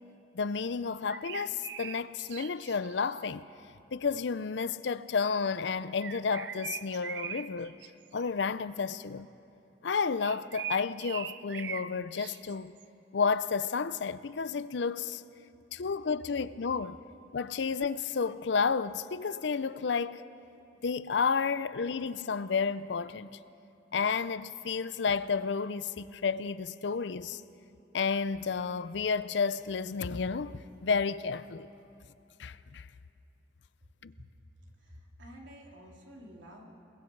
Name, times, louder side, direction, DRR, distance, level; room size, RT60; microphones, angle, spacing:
voice 1, 0.3-3.4 3.9-7.8 8.1-9.3 9.8-12.7 13.1-15.2 15.7-17.0 17.3-20.2 20.8-23.3 23.9-27.4 27.9-31.7 32.4-32.9 34.0-34.1, left 5 dB, 70° left, 0.5 m, -31 dB
sound 1, 1.0-3.2 6.0-8.4 10.2-11.9 12.1-12.8, right 8 dB, 65° right, 0.6 m, -41 dB
voice 2, 34.6-36.7, equal, 90° right, 3.3 m, -51 dB
28.0 x 21.0 x 4.6 m
head